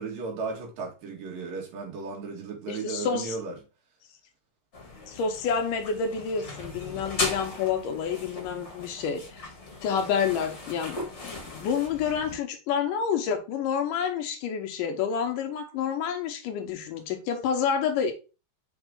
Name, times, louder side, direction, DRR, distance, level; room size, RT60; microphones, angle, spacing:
voice 1, 0.0-3.5, right 4 dB, 85° right, 3.5 m, -35 dB
voice 2, 2.7-3.4 5.1-9.4 9.8-18.1, left 7 dB, 80° left, 2.5 m, -29 dB
sound 1, 4.7-12.4, left 2 dB, 30° left, 1.3 m, -38 dB
7.1 x 3.6 x 3.7 m
omnidirectional pair, 3.8 m